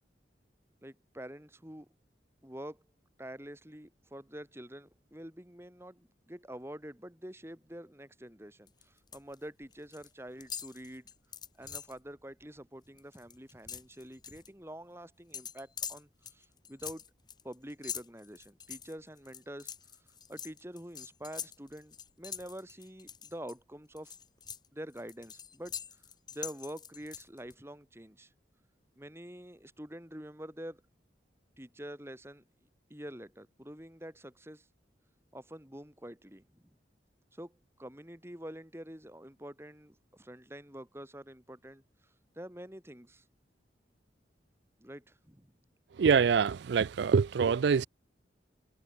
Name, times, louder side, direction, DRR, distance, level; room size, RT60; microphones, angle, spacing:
voice 1, 0.8-1.9 2.4-2.8 3.2-11.1 11.6-17.0 17.4-19.7 20.3-24.2 24.7-25.8 26.3-28.3 29.0-30.8 31.6-32.4 32.9-34.7 35.3-36.6 37.3-43.2 44.8-45.5, equal, 15° right, 3.5 m, -46 dB
sound 1, 8.7-9.3 9.6-10.1 10.4-12.0 12.4-12.6 12.9-14.5 15.3-23.5 24.0-27.5, left 7 dB, 25° left, 5.9 m, -44 dB
voice 2, 46.0-47.9, right 6 dB, 75° right, 0.4 m, -25 dB
head